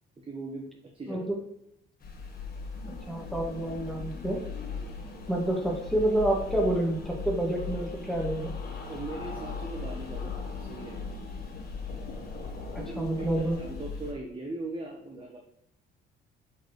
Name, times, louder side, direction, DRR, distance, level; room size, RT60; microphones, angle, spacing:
voice 1, 0.2-1.3 4.8-4.9 8.9-11.1 12.8-15.4, right 2 dB, 25° right, 0 dB, 1.1 m, -39 dB
sound 1, 2.0-14.1, left 4 dB, 50° left, 1.5 m, -38 dB
voice 2, 3.1-4.4 5.3-8.5 13.0-13.6, right 1 dB, ahead, -2 dB, 2.0 m, -28 dB
7.2 x 4.1 x 3.2 m, 0.80 s
cardioid pair, 100°, 20 cm